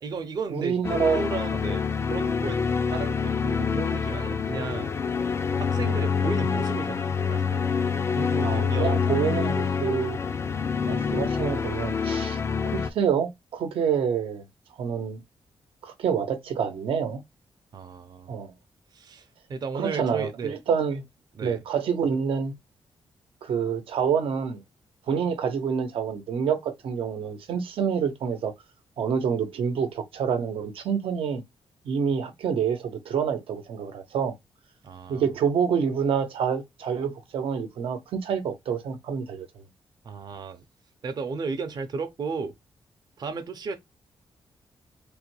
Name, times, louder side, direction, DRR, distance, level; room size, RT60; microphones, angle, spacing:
voice 1, 0.0-2.6 2.9-4.9 5.6-7.9 8.1-9.0 9.8-9.9 17.7-18.4 18.9-20.6 21.3-21.6 34.8-35.3 40.0-40.7 41.0-42.5 43.2-43.8, right 4 dB, 50° right, 0.6 m, -34 dB
voice 2, 0.5-1.2 5.8-6.0 8.4-10.2 10.9-12.4 12.7-14.4 14.8-15.2 15.8-17.2 18.3-18.5 19.7-21.0 21.4-22.5 23.4-24.6 25.1-28.5 29.0-31.4 31.8-34.3 35.1-39.5, right 7 dB, 85° right, 0.8 m, -27 dB
sound 1, 0.8-12.9, left 6 dB, 30° left, 0.4 m, -26 dB
3.3 x 2.2 x 3.1 m
wide cardioid pair, 140°, 9 cm